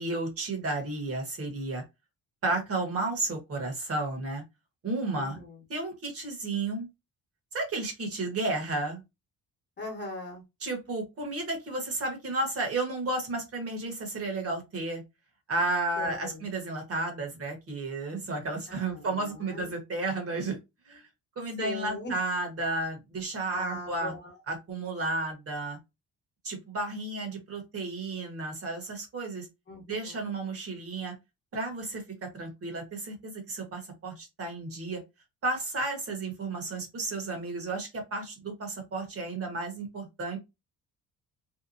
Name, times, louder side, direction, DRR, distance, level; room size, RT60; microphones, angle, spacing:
voice 1, 0.0-1.8 2.4-4.4 4.8-5.4 5.7-6.9 7.5-9.0 10.6-15.0 15.5-20.6 20.8-21.1 21.4-24.1 24.5-25.8 26.4-29.5 29.9-31.1 31.5-35.0 35.4-40.4, right 2 dB, 40° right, 1.1 m, -32 dB
voice 2, 5.2-5.6 9.8-10.4 16.0-16.5 18.7-19.7 21.6-22.2 23.5-24.4 29.7-30.2, left 2 dB, 30° left, 1.1 m, -40 dB
2.8 x 2.1 x 2.6 m
cardioid pair, 135°, 35 cm